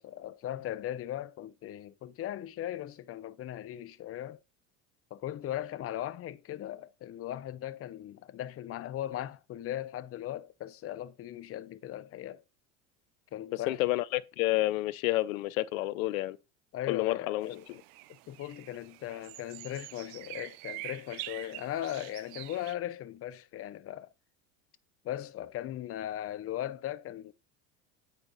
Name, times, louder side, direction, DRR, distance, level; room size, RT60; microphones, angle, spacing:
voice 1, 0.0-4.4 5.1-12.4 13.3-13.8 16.7-17.6 18.3-24.1 25.0-27.3, left 12 dB, 35° left, 0.7 m, -38 dB
voice 2, 13.5-16.4 16.9-17.8, left 18 dB, 70° left, 0.7 m, -30 dB
sound 1, 17.4-22.7, right 19 dB, 55° right, 0.6 m, -45 dB
8.7 x 5.0 x 4.0 m
hypercardioid pair, 85°, 43 cm